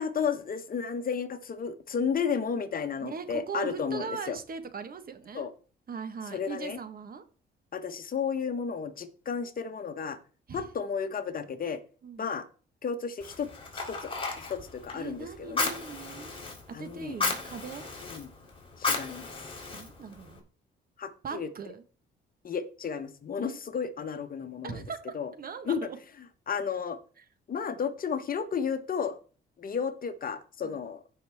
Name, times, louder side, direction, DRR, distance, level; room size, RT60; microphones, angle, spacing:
voice 1, 0.0-4.4 5.3-5.5 6.3-6.8 7.7-10.2 10.5-11.8 12.2-12.4 12.8-13.5 13.7-15.7 16.7-17.2 18.0-18.3 18.8-19.3 21.0-21.5 22.4-24.8 25.1-25.3 25.7-25.9 26.5-27.0 27.5-29.2 29.6-31.0, left 6 dB, 45° left, 9 dB, 1.1 m, -33 dB
voice 2, 3.0-5.5 5.9-7.2 10.5-10.7 12.0-12.3 14.9-16.4 16.7-17.9 19.7-20.4 21.2-21.8 23.5-23.6 24.6-26.0 27.2-27.3 30.6-30.8, right 6 dB, 45° right, 9 dB, 1.4 m, -40 dB
Fire, 13.2-20.4, left 3 dB, 25° left, 3.5 m, -35 dB
16.0 x 5.5 x 3.5 m, 0.39 s
cardioid pair, 90°, 20 cm